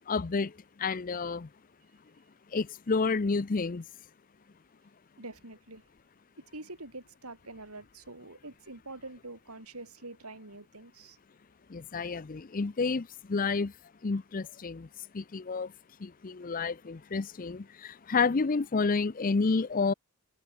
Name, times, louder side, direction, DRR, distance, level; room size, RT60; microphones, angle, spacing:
voice 1, 0.1-1.5 2.5-3.8 11.7-13.7 14.0-14.9 15.1-15.7 16.0-19.9, left 4 dB, 40° left, 0.5 m, -30 dB
voice 2, 5.2-5.9 6.4-11.2, right 2 dB, 80° right, 6.9 m, -45 dB
head